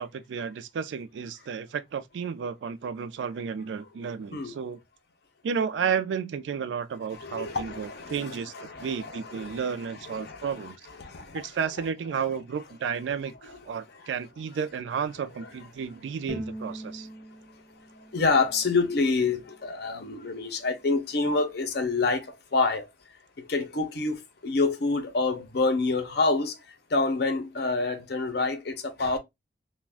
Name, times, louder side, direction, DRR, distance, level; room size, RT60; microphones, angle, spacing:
voice 1, 0.0-4.8 5.4-10.8 11.3-17.1, right 6 dB, 75° right, 0.3 m, -32 dB
voice 2, 7.1-11.5 13.4-13.6 13.9-14.1 15.4-15.5 18.1-22.9 23.5-26.6 26.9-29.2, left 3 dB, 60° left, 0.6 m, -28 dB
Bowed string instrument, 16.3-19.5, right 1 dB, 15° left, 0.5 m, -42 dB
2.4 x 2.1 x 3.3 m
head